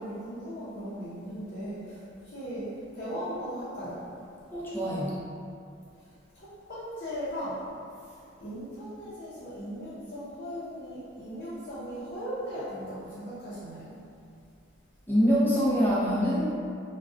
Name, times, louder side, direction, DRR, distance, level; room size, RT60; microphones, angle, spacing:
voice 1, 0.0-2.6 2.9-4.0 6.3-7.6 8.4-13.9, equal, 55° left, -12 dB, 0.7 m, -38 dB
voice 2, 4.5-5.1 15.1-16.5, equal, 10° left, -9 dB, 0.6 m, -24 dB
3.7 x 2.2 x 2.4 m, 2.4 s
head